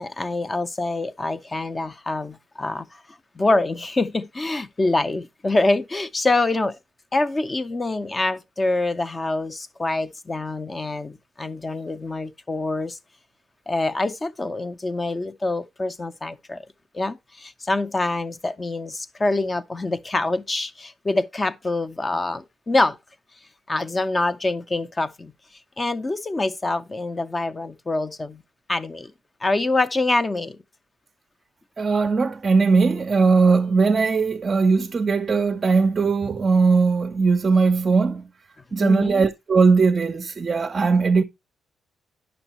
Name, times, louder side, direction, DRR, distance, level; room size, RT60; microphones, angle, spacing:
voice 1, 0.0-3.0 3.4-6.8 7.1-13.0 13.7-16.7 16.9-23.0 23.7-25.3 25.8-28.4 28.7-29.1 29.4-30.6 38.8-39.2, left 2 dB, 20° left, 0.4 m, -25 dB
voice 2, 31.8-38.2 38.7-41.2, right 4 dB, 30° right, 0.5 m, -19 dB
9.8 x 6.1 x 2.9 m
cardioid pair, 135°, 0 cm